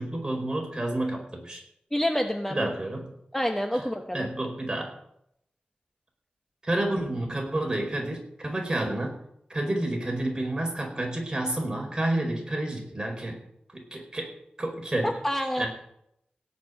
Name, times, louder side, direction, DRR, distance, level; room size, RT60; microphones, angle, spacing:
voice 1, 0.0-1.6 2.5-3.1 4.1-4.9 6.6-9.2 9.5-13.4 13.7-14.3 14.6-15.1 15.6-15.7, right 1 dB, 25° right, 1 dB, 4.9 m, -29 dB
voice 2, 1.9-2.7 3.3-4.3 15.0-15.6, equal, 10° left, 4 dB, 1.1 m, -28 dB
17.0 x 6.1 x 9.3 m, 0.76 s
wide cardioid pair, 85°, 3 cm